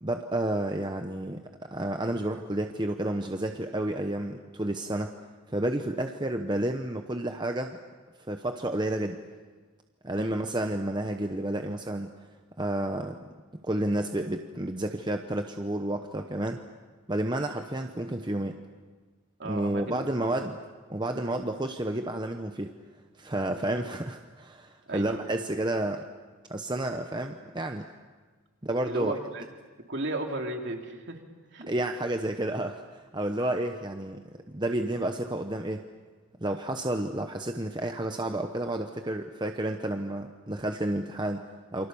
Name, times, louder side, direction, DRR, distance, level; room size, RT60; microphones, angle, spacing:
voice 1, 0.0-5.1 5.5-7.8 8.3-9.2 10.0-12.1 12.6-13.2 13.6-16.6 17.1-18.5 19.5-20.6 20.9-22.7 23.2-26.0 26.5-27.9 28.6-29.2 31.7-35.8 36.4-41.9, right 1 dB, 20° right, 5 dB, 0.9 m, -31 dB
voice 2, 19.4-20.0 20.3-20.5 23.7-23.8 24.9-25.2 28.8-29.4 29.9-31.2 31.5-31.7, right 2 dB, 50° right, 3 dB, 2.9 m, -35 dB
28.5 x 25.0 x 7.0 m, 1.4 s
head